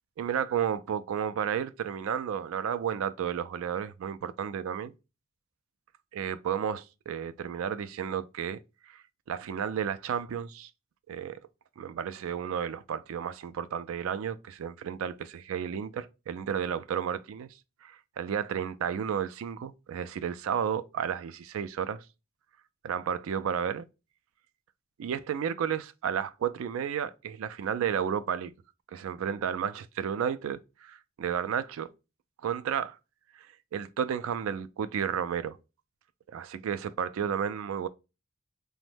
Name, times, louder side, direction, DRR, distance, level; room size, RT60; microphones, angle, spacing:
voice 1, 0.2-4.9 6.1-8.6 8.9-10.7 11.1-11.4 11.8-17.5 17.8-22.0 22.8-23.8 25.0-28.5 28.9-31.9 32.4-33.0 33.7-35.6 36.3-37.9, right 8 dB, 70° right, 0.3 m, -32 dB
3.0 x 2.1 x 3.2 m
head